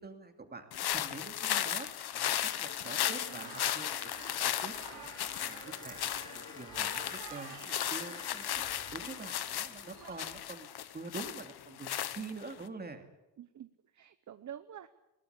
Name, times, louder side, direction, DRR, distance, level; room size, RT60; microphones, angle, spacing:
voice 1, 0.0-1.9 2.1-5.1 5.4-13.0, right 3 dB, 20° right, 6 dB, 2.6 m, -46 dB
sound 1, 0.7-12.6, left 11 dB, 60° left, 1.1 m, -36 dB
sound 2, 2.1-10.4, left 1 dB, 10° left, 5.0 m, -51 dB
voice 2, 2.8-3.6 13.4-14.9, right 10 dB, 45° right, 11 dB, 0.9 m, -49 dB
sound 3, 3.4-10.4, right 7 dB, 65° right, 3.6 m, -52 dB
21.0 x 18.0 x 8.4 m, 0.95 s
cardioid pair, 130°, 42 cm